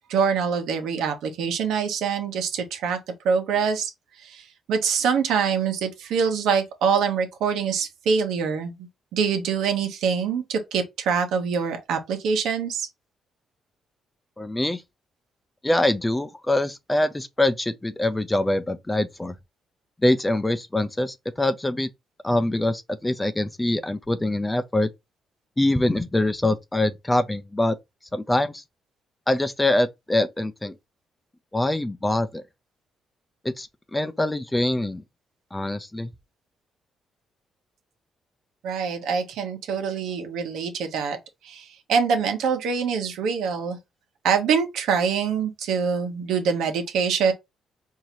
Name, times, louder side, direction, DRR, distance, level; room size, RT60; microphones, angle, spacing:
voice 1, 0.1-3.0 3.2-3.9 4.2-8.7 9.1-12.9 38.6-41.2 41.4-43.8 44.2-47.3, right 6 dB, 85° right, 1.1 m, -24 dB
voice 2, 14.4-14.8 15.6-19.3 20.0-21.9 22.2-24.9 25.6-27.8 28.1-28.6 29.3-30.7 31.5-32.4 33.4-35.0 35.5-36.1, left 1 dB, 10° left, 0.5 m, -24 dB
4.6 x 2.8 x 2.8 m
cardioid pair, 90°, 0 cm